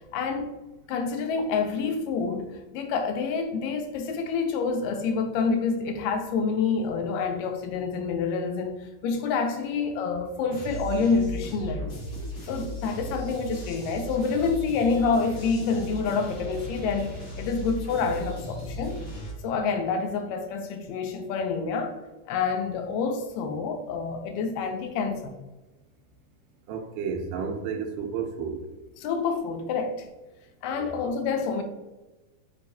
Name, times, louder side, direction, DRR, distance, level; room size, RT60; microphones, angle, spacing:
voice 1, 0.1-0.5 0.9-11.9 12.5-17.1 17.4-19.1 19.4-22.0 22.3-25.4 29.0-30.1 30.6-31.6, left 5 dB, 85° left, 2.2 m, -27 dB
sound 1, 10.5-19.3, equal, 55° left, 1.1 m, -36 dB
voice 2, 26.7-28.6 30.7-31.0, right 6 dB, 85° right, 2.2 m, -32 dB
6.5 x 2.8 x 2.6 m
omnidirectional pair, 3.8 m